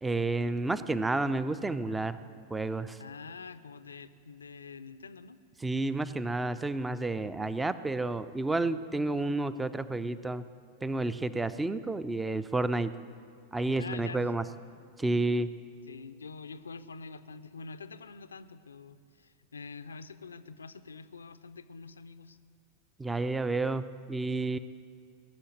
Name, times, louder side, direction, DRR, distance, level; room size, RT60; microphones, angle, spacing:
voice 1, 0.0-2.2 2.5-3.0 5.6-10.4 10.8-12.9 13.5-14.4 15.0-15.5 23.0-24.6, right 2 dB, 10° right, 14 dB, 0.5 m, -30 dB
voice 2, 3.0-5.4 13.7-14.3 15.9-22.4, left 4 dB, 75° left, 12 dB, 0.5 m, -45 dB
19.0 x 6.9 x 9.1 m, 2.3 s
figure-of-eight pair, 90°, 0 cm